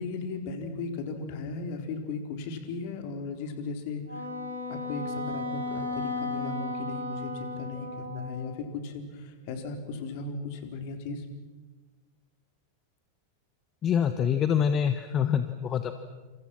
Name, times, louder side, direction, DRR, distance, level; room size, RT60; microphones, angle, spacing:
voice 1, 0.0-4.3 4.7-11.3, left 4 dB, 50° left, 6 dB, 4.2 m, -36 dB
Wind instrument woodwind instrument, 4.1-8.6, left 2 dB, 85° right, 4.0 m, -35 dB
voice 2, 13.8-16.0, left 8 dB, 30° left, 10 dB, 1.4 m, -25 dB
28.5 x 28.0 x 6.1 m, 1.3 s
figure-of-eight pair, 90°, 0 cm